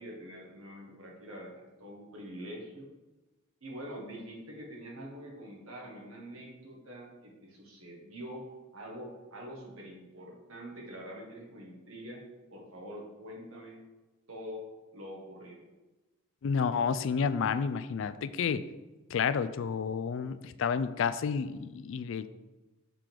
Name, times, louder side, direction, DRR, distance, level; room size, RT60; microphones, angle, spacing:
voice 1, 0.0-2.9 3.6-8.4 8.7-12.2 12.5-13.8 14.3-14.6 14.9-15.7, equal, 80° right, -2 dB, 1.7 m, -45 dB
voice 2, 16.4-18.6 19.1-22.3, left 6 dB, 65° left, 14 dB, 0.3 m, -30 dB
6.7 x 3.8 x 4.6 m, 1.1 s
head